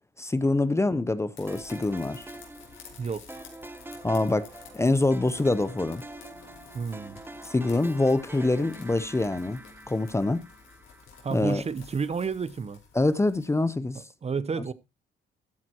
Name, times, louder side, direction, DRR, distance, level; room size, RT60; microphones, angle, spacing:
voice 1, 0.2-2.3 4.0-4.5 4.7-6.0 7.5-9.6 9.9-10.4 11.3-11.6 12.9-14.0, left 2 dB, 15° left, 0.6 m, -25 dB
sound 1, 1.3-13.7, left 6 dB, 80° left, 4.5 m, -52 dB
sound 2, 1.5-11.7, right 2 dB, 10° right, 1.0 m, -45 dB
sound 3, 2.9-10.6, left 1 dB, 55° left, 5.5 m, -55 dB
voice 2, 3.0-3.4 6.7-7.2 11.2-12.8 13.9-14.7, right 5 dB, 30° right, 0.8 m, -31 dB
14.0 x 9.1 x 2.9 m
cardioid pair, 90°, 20 cm